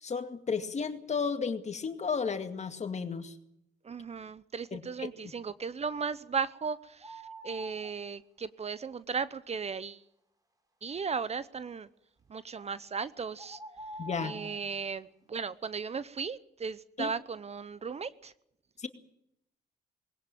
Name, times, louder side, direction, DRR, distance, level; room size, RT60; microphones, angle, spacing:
voice 1, 0.0-3.4 4.7-5.1 14.0-14.3 17.0-17.1 18.8-18.9, left 5 dB, 40° left, 8 dB, 2.2 m, -33 dB
voice 2, 3.8-10.0 10.8-11.9 12.3-13.6 14.2-18.3, right 5 dB, 35° right, 17 dB, 0.9 m, -36 dB
sound 1, 7.0-7.9 12.5-12.7 13.4-14.6, right 1 dB, 20° right, 4.1 m, -45 dB
20.5 x 17.0 x 9.2 m, 0.78 s
supercardioid pair, 70°, 18 cm